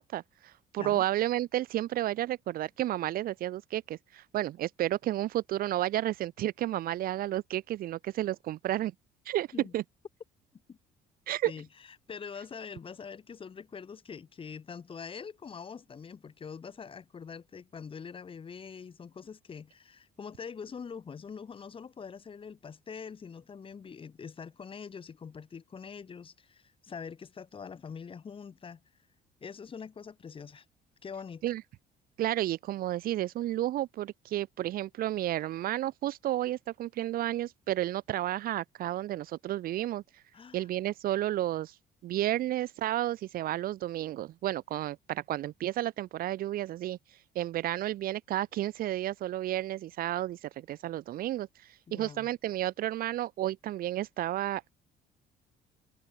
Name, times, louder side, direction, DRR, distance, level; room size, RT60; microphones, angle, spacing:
voice 1, 0.0-8.9 9.3-9.5 9.7-9.8 11.3-11.5 31.4-31.6 32.2-40.0 40.5-41.7 42.0-47.0 47.3-51.5 51.9-54.7, right 14 dB, 60° right, 0.6 m, -32 dB
voice 2, 12.1-28.8 29.4-30.6 31.0-31.4 40.3-40.7 51.9-52.3, left 6 dB, 30° left, 1.6 m, -44 dB
cardioid pair, 110°, 17 cm